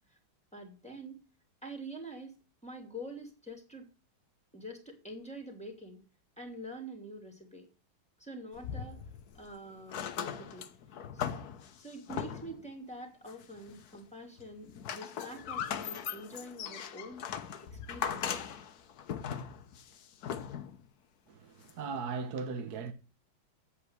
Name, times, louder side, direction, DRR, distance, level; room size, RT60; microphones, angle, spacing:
voice 1, 0.5-1.2 1.6-2.4 2.6-3.9 4.5-6.0 6.4-7.7 8.2-9.0 9.3-10.7 11.1-11.4 11.8-17.2 17.6-18.4, right 1 dB, 5° left, 2.6 m, -46 dB
Door Close Heavy Metal Glass Medium Creak Seal Theatre, 8.5-9.5 9.8-12.7 13.3-14.0 14.4-20.8 21.7-21.8, left 8 dB, 55° left, 1.2 m, -39 dB
voice 2, 21.3-22.9, right 5 dB, 55° right, 1.6 m, -38 dB
8.5 x 8.2 x 8.0 m
omnidirectional pair, 2.2 m